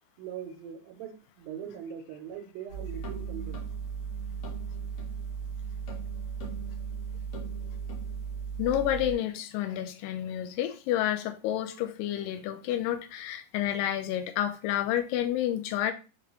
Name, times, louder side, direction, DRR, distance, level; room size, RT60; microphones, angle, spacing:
voice 1, 0.2-3.7, right 8 dB, 85° right, 2.4 m, -41 dB
sound 1, 2.7-9.1, right 6 dB, 60° left, 1.5 m, -36 dB
voice 2, 8.6-15.9, left 11 dB, 80° left, 2.2 m, -30 dB
5.9 x 3.0 x 3.0 m
omnidirectional pair, 4.1 m